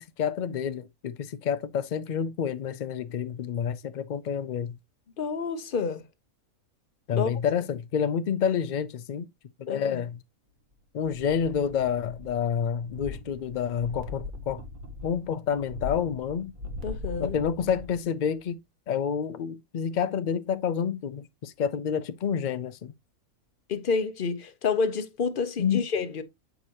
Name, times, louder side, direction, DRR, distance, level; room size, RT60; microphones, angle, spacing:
voice 1, 0.0-4.8 7.1-9.3 9.6-10.2 10.9-14.6 15.0-16.5 17.2-18.6 18.9-22.9 25.6-25.8, left 7 dB, 85° left, 0.4 m, -29 dB
voice 2, 5.2-6.0 7.1-7.3 9.7-10.0 16.8-17.4 23.7-26.2, left 5 dB, 45° left, 0.8 m, -29 dB
sound 1, 11.0-12.5 12.7-18.1 18.4-18.5, left 3 dB, 40° right, 1.2 m, -40 dB
7.9 x 4.8 x 2.8 m
omnidirectional pair, 1.4 m